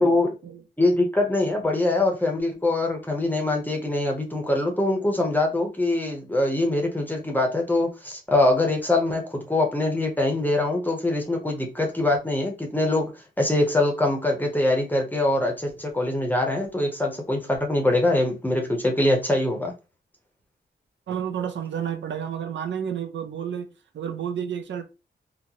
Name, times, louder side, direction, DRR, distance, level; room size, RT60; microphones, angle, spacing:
voice 1, 0.0-0.3 0.8-13.1 13.4-19.7, left 2 dB, 10° left, 0.7 m, -23 dB
voice 2, 21.1-24.8, right 8 dB, 80° right, 0.5 m, -31 dB
3.9 x 2.1 x 2.8 m
wide cardioid pair, 160°, 19 cm